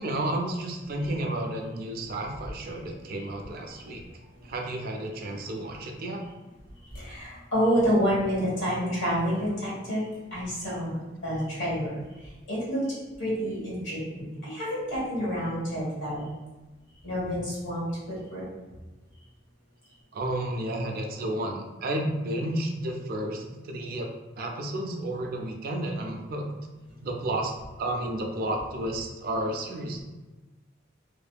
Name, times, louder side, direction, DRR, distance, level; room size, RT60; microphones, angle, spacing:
voice 1, 0.0-4.0 4.5-6.2 20.1-24.1 24.4-26.5 27.0-27.5 27.8-30.0, right 1 dB, 50° right, 2 dB, 0.4 m, -31 dB
voice 2, 6.8-12.8 13.2-16.3 17.0-18.4, equal, 75° left, -8 dB, 1.4 m, -29 dB
2.5 x 2.5 x 2.2 m, 1.2 s
head